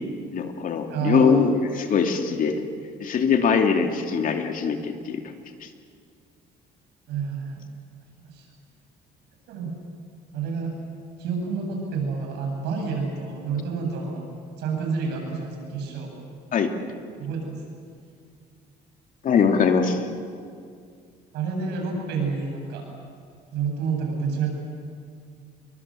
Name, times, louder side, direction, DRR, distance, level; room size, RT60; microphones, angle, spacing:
voice 1, 0.3-2.6 3.0-5.2 16.5-16.7 19.2-20.0, left 6 dB, 55° left, 4 dB, 2.7 m, -22 dB
voice 2, 0.9-1.4 7.1-7.7 8.2-8.5 9.5-9.7 10.3-10.7 11.2-14.3 14.6-16.1 17.2-17.6 21.3-22.9 23.5-24.5, right 5 dB, 85° right, 1 dB, 7.8 m, -29 dB
28.5 x 22.5 x 7.8 m, 2.2 s
cardioid pair, 110°, 17 cm